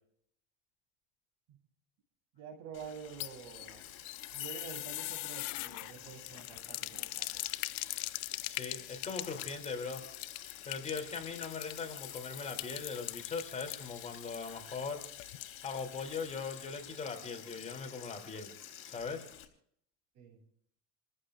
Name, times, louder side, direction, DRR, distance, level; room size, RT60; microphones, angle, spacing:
voice 1, 2.3-3.9 4.3-7.4 20.1-20.4, right 7 dB, 60° right, 2 dB, 7.3 m, -48 dB
Sink (filling or washing), 2.7-19.4, left 10 dB, 45° left, 3.6 m, -50 dB
sound 1, 3.0-15.9 16.2-16.3 16.6-16.7, left 19 dB, 65° left, 0.7 m, -42 dB
voice 2, 8.5-10.0 10.6-15.0 15.6-18.5 18.8-19.2, left 5 dB, 25° left, 4 dB, 3.1 m, -40 dB
29.0 x 14.5 x 2.5 m, 0.69 s
cardioid pair, 130°, 29 cm